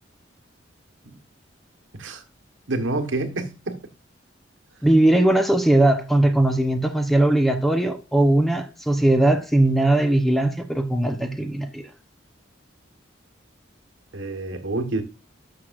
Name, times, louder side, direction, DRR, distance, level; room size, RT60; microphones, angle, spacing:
voice 1, 2.7-3.8 14.1-15.0, right 2 dB, 85° right, 1.3 m, -28 dB
voice 2, 4.8-11.8, right 1 dB, ahead, 0.7 m, -19 dB
12.0 x 6.3 x 2.5 m
head